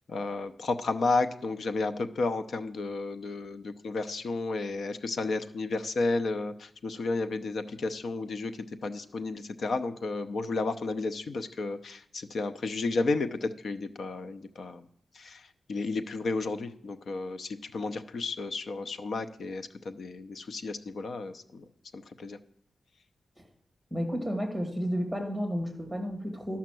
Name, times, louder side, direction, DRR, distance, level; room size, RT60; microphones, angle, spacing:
voice 1, 0.1-14.9 15.1-21.6 21.9-22.4, left 3 dB, 65° left, 9 dB, 0.7 m, -32 dB
voice 2, 23.9-26.6, equal, 5° left, 1 dB, 2.4 m, -32 dB
12.0 x 5.8 x 7.6 m, 0.70 s
wide cardioid pair, 175°, 0 cm